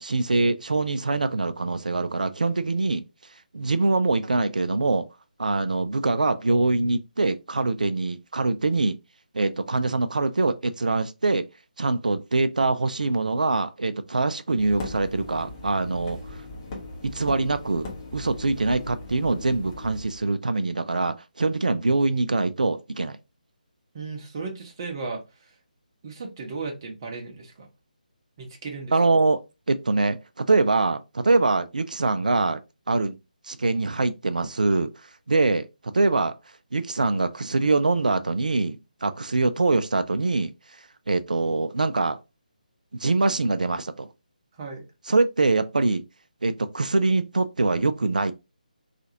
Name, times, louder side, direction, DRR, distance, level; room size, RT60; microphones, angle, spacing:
voice 1, 0.0-3.0 3.5-5.1 5.4-9.0 9.3-11.5 11.8-16.2 17.0-23.2 28.9-29.4 29.7-32.6 32.9-33.2 33.5-34.9 35.3-36.3 36.7-40.5 41.1-42.2 42.9-44.1 45.1-46.0 46.4-48.3, right 3 dB, 65° right, 0.4 m, -24 dB
sound 1, 14.6-20.2, left 2 dB, 25° left, 0.8 m, -39 dB
voice 2, 23.9-25.5 26.0-27.7 28.4-28.9 44.5-44.9, right 4 dB, 30° right, 0.8 m, -35 dB
2.8 x 2.4 x 2.7 m
figure-of-eight pair, 150°, 5 cm